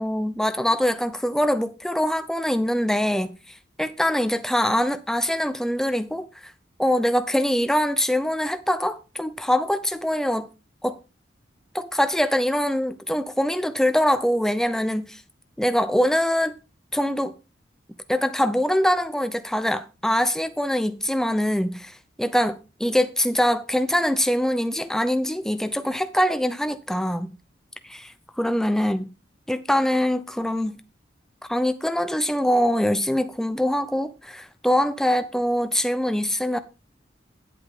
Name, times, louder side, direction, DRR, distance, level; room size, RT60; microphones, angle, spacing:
voice 1, 0.0-6.3 6.8-10.5 10.8-11.0 11.7-15.2 15.6-16.5 16.9-17.3 18.1-27.3 27.8-29.1 29.5-30.8 31.5-36.6, equal, 5° left, 0.6 m, -23 dB
10.5 x 8.0 x 3.8 m
head